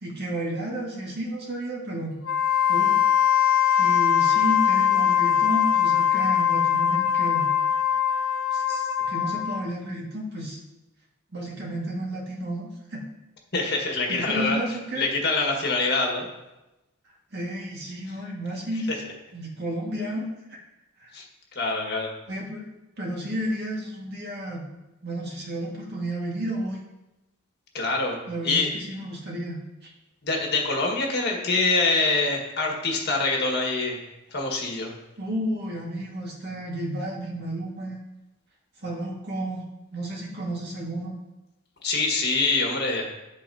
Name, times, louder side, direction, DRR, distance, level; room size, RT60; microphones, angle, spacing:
voice 1, 0.0-2.2 2.7-3.0 3.8-7.5 8.5-10.6 11.3-13.0 14.1-15.1 17.3-18.9 19.3-20.6 21.0-21.1 22.3-22.7 23.0-24.6 25.0-26.8 28.3-29.9 35.2-38.0 38.8-39.6 39.9-41.1, right 1 dB, 50° right, -2 dB, 1.9 m, -32 dB
Wind instrument woodwind instrument, 2.2-9.7, left 9 dB, 90° left, 0.9 m, -22 dB
voice 2, 13.5-14.6 15.0-16.3 18.9-19.0 21.1-21.2 21.5-22.1 27.7-28.7 30.2-34.0 34.3-34.9 41.8-43.2, left 3 dB, 55° left, 1 dB, 1.7 m, -25 dB
10.0 x 8.2 x 2.8 m, 1.0 s
head